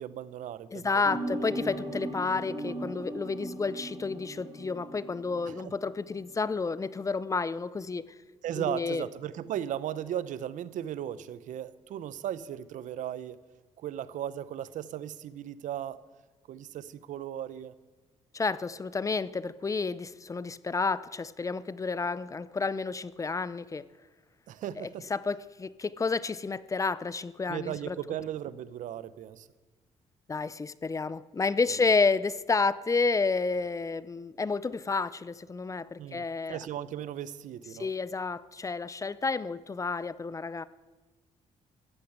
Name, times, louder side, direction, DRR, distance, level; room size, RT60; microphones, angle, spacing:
voice 1, 0.0-1.1 5.5-5.7 8.4-13.4 13.8-16.0 16.5-17.7 24.5-25.1 27.5-29.5 36.0-37.9, right 11 dB, 75° right, 16 dB, 0.8 m, -36 dB
voice 2, 0.7-8.1 8.6-9.1 18.3-23.9 24.8-28.0 30.3-36.6 37.8-40.6, left 4 dB, 25° left, 18 dB, 0.5 m, -30 dB
sound 1, 1.0-6.3 6.6-7.0, right 1 dB, 30° right, 5.0 m, -38 dB
14.5 x 12.0 x 8.0 m, 1.3 s
cardioid pair, 105°, 13 cm